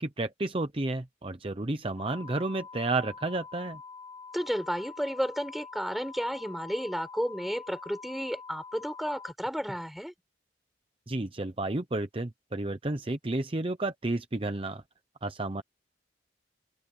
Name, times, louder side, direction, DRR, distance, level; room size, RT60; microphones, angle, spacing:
voice 1, 0.0-3.8 11.1-14.8 15.2-15.6, right 2 dB, 30° right, 0.8 m, -31 dB
sound 1, 2.0-9.3, left 5 dB, 20° left, 4.3 m, -46 dB
voice 2, 4.3-10.1, equal, ahead, 5.1 m, -32 dB
open air
head